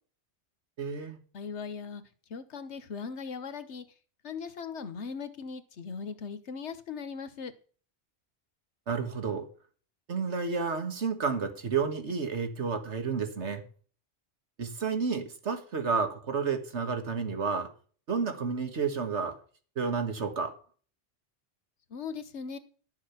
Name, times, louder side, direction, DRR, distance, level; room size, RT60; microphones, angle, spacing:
voice 1, 0.8-1.2 8.9-9.5 10.1-13.6 14.6-17.7 18.1-19.4 19.8-20.6, right 5 dB, 85° right, 1.9 m, -31 dB
voice 2, 1.3-2.0 2.3-3.8 4.2-7.5 21.9-22.6, left 5 dB, 80° left, 1.4 m, -39 dB
11.5 x 7.1 x 5.7 m
omnidirectional pair, 1.2 m